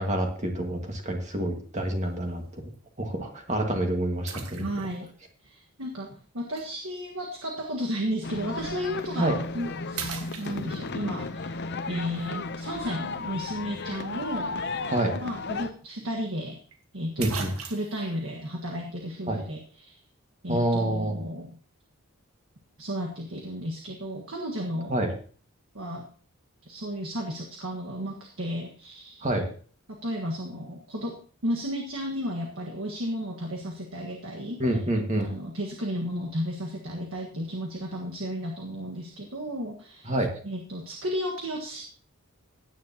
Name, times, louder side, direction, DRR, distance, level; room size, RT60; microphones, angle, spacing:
voice 1, 0.0-2.6 3.0-4.6 9.2-9.3 14.9-15.2 17.2-17.5 19.3-19.4 20.5-21.2 24.9-25.1 29.2-29.5 34.6-35.3 40.1-40.3, right 1 dB, 35° right, 2 dB, 1.9 m, -27 dB
sound 1, 1.8-2.1 2.7-2.8 4.3-5.1 6.6-6.7 8.8-9.0 9.5-9.6 9.9-11.0 15.1-15.2 15.5-15.6 16.7-16.8 17.2-18.1, right 5 dB, 85° right, 1.6 m, -38 dB
voice 2, 4.6-5.1 5.4-11.6 11.9-14.5 15.2-16.6 16.9-20.0 20.4-21.6 22.8-24.9 25.7-26.0 26.6-29.3 30.0-34.6 35.2-40.1 40.4-41.8, equal, 65° right, 0 dB, 1.6 m, -33 dB
sound 2, 8.2-15.7, left 3 dB, 50° left, 0.7 m, -34 dB
16.5 x 9.6 x 2.9 m, 0.42 s
head